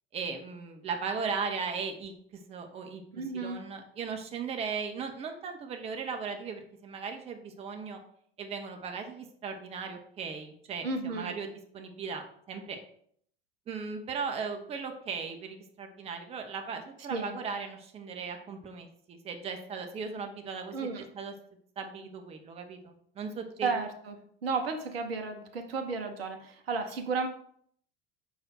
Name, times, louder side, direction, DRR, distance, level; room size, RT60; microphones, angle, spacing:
voice 1, 0.1-3.0 3.3-8.0 8.4-12.8 13.7-20.9 21.1-21.3 21.8-23.7, right 5 dB, 20° right, 5 dB, 0.6 m, -37 dB
voice 2, 3.1-3.6 10.8-11.3 17.1-17.4 20.7-21.1 23.6-27.3, right 4 dB, 75° right, 5 dB, 0.6 m, -33 dB
4.9 x 2.4 x 4.2 m, 0.64 s
figure-of-eight pair, 70°, 31 cm